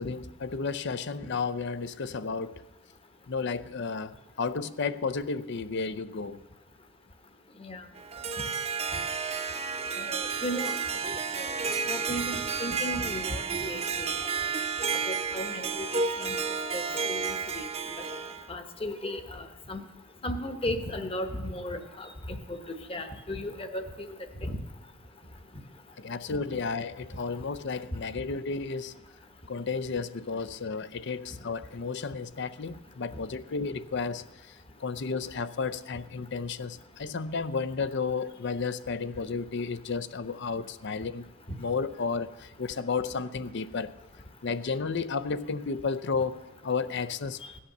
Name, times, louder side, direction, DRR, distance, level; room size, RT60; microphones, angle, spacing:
voice 1, 0.0-2.7 3.3-6.4 26.0-28.9 29.5-34.2 34.8-41.2 41.6-43.9 44.4-47.4, left 4 dB, 60° left, 13 dB, 0.6 m, -32 dB
Harp, 8.0-18.5, right 5 dB, 30° right, 0.7 m, -31 dB
voice 2, 10.0-10.8 11.0-11.5 11.9-14.5 15.1-16.4 16.7-17.7 18.5-19.8 20.2-22.6 22.9-24.1 24.4-24.6, left 1 dB, 30° left, 7 dB, 1.0 m, -36 dB
16.5 x 8.6 x 6.6 m, 1.1 s
head